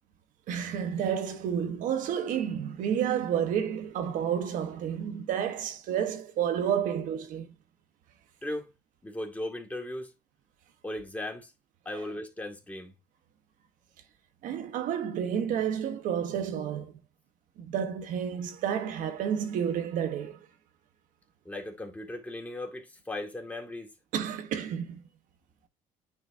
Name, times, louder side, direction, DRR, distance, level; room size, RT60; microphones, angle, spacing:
voice 1, 0.5-7.5 14.4-17.0 17.6-20.4 24.1-25.0, right 8 dB, 65° right, 1.2 m, -30 dB
voice 2, 9.0-10.1 10.8-11.5 11.9-12.9 21.5-23.9, left 1 dB, 10° left, 1.9 m, -37 dB
9.7 x 3.9 x 2.7 m
supercardioid pair, 95°, 14 cm